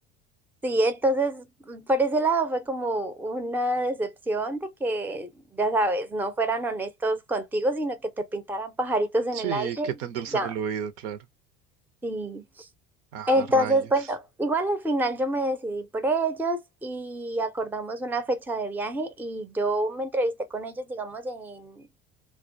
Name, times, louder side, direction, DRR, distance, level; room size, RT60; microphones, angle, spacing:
voice 1, 0.6-9.9 10.3-10.5 12.0-12.7 13.3-21.8, right 1 dB, 5° right, 0.5 m, -27 dB
voice 2, 9.3-11.2 13.1-14.1, right 9 dB, 70° right, 0.7 m, -33 dB
2.2 x 2.2 x 2.5 m
hypercardioid pair, 75°, 33 cm